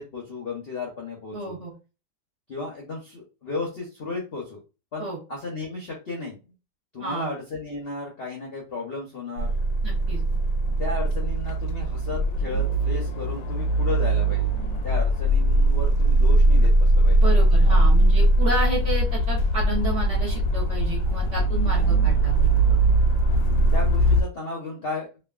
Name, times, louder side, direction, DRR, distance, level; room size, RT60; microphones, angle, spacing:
voice 1, 0.0-1.6 2.5-4.6 4.9-6.4 6.9-9.5 10.8-14.5 14.8-17.3 17.6-17.8 23.7-25.1, left 3 dB, 55° left, -2 dB, 0.6 m, -34 dB
voice 2, 1.3-1.7 5.0-5.2 7.0-7.3 9.8-10.2 17.2-22.5, right 2 dB, 50° right, -3 dB, 1.1 m, -31 dB
sound 1, 9.4-24.2, right 1 dB, 85° left, 1.3 m, -20 dB
3.0 x 2.3 x 2.3 m, 0.31 s
omnidirectional pair, 2.0 m